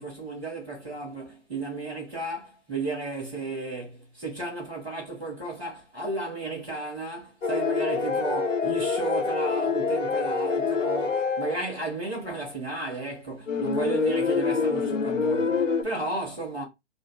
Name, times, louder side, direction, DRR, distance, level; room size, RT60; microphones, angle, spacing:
voice 1, 0.0-16.6, right 2 dB, 5° right, 0.4 m, -33 dB
sound 1, 7.4-11.6 13.5-15.8, left 5 dB, 75° left, 0.9 m, -26 dB
2.4 x 2.4 x 3.8 m
figure-of-eight pair, 135°, 37 cm